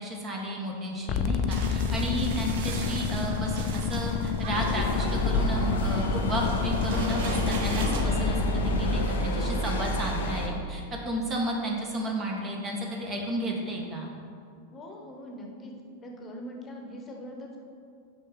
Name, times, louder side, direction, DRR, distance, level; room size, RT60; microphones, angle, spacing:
voice 1, 0.0-14.1, right 1 dB, 25° right, -1 dB, 1.5 m, -33 dB
sound 1, 1.1-9.1, left 6 dB, 40° left, 0.5 m, -29 dB
sound 2, 1.5-8.0, right 4 dB, 55° right, 0.9 m, -39 dB
sound 3, 4.5-10.5, left 1 dB, 60° left, 0.9 m, -29 dB
voice 2, 14.7-15.7 16.0-17.6, equal, 20° left, 1 dB, 1.2 m, -42 dB
6.2 x 5.4 x 6.7 m, 2.3 s
figure-of-eight pair, 90°, 0 cm